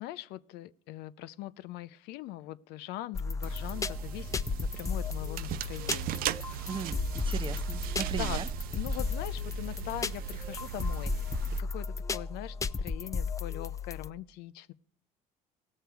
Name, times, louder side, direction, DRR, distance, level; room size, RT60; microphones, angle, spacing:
voice 1, 0.0-6.7 8.1-8.4 8.7-14.7, left 15 dB, 75° left, 0.5 m, -42 dB
sound 1, 3.1-14.1, left 4 dB, 20° left, 0.4 m, -35 dB
sound 2, 3.4-11.6, right 12 dB, 60° right, 0.4 m, -38 dB
voice 2, 6.6-8.5, right 5 dB, 30° right, 0.7 m, -38 dB
16.5 x 6.6 x 4.6 m
supercardioid pair, 85°, 17 cm